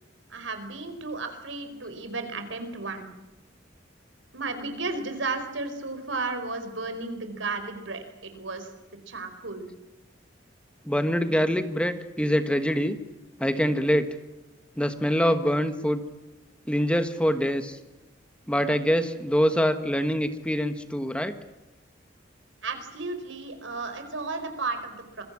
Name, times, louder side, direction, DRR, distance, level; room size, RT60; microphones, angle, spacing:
voice 1, 0.3-3.1 4.3-8.7 9.1-9.7 22.6-25.2, right 3 dB, 85° right, 8 dB, 4.7 m, -33 dB
voice 2, 10.8-13.0 13.4-14.1 14.8-16.0 16.7-17.8 18.5-21.3, equal, 5° left, 9 dB, 1.4 m, -24 dB
27.0 x 22.5 x 7.4 m, 1.0 s
head